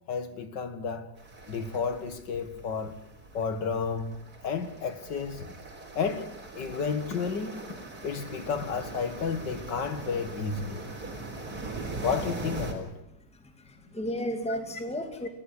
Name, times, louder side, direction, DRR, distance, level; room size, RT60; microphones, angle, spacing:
voice 1, 0.1-1.1 1.5-3.0 3.3-4.2 4.4-5.6 6.0-7.6 8.0-10.8 12.0-12.9, left 5 dB, 80° left, 2.5 m, -32 dB
sound 1, 1.2-12.7, right 2 dB, 60° right, 4.5 m, -41 dB
voice 2, 13.3-15.3, equal, 5° left, 2.3 m, -34 dB
21.5 x 15.5 x 10.0 m
omnidirectional pair, 1.9 m